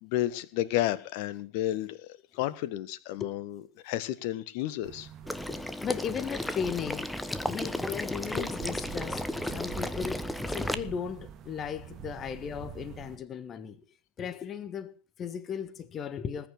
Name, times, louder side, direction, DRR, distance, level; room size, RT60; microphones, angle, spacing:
voice 1, 0.0-2.1 2.4-5.1, left 14 dB, 45° left, 1.4 m, -31 dB
sound 1, 4.8-13.2, right 9 dB, 30° right, 2.0 m, -46 dB
Water / Liquid, 5.3-10.7, left 1 dB, 5° left, 1.1 m, -34 dB
voice 2, 5.5-13.8 14.2-16.5, left 7 dB, 25° left, 1.7 m, -36 dB
20.0 x 9.8 x 6.1 m
figure-of-eight pair, 90°, 0 cm